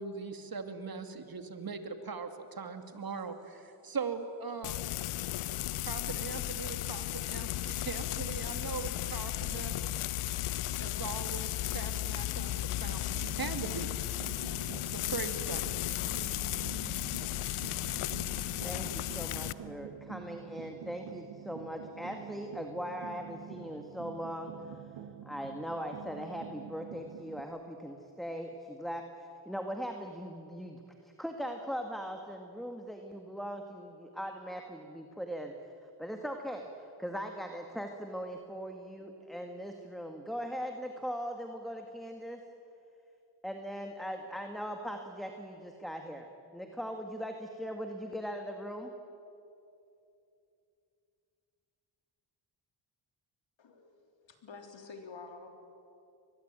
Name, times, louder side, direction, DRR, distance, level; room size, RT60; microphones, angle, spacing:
voice 1, 0.0-4.8 5.9-9.9 10.8-13.9 14.8-15.7, right 5 dB, 45° right, 7 dB, 2.6 m, -40 dB
Frying (food), 4.6-19.5, left 14 dB, 90° left, 0.8 m, -35 dB
sound 1, 13.1-27.4, right 9 dB, 85° right, 1.5 m, -48 dB
voice 2, 18.6-24.5 25.2-35.5 36.0-42.4 43.4-48.9, equal, ahead, 4 dB, 2.1 m, -40 dB
voice 3, 53.6-55.5, left 4 dB, 65° left, 5 dB, 3.7 m, -49 dB
23.5 x 20.5 x 9.2 m, 2.7 s
cardioid pair, 65°, 49 cm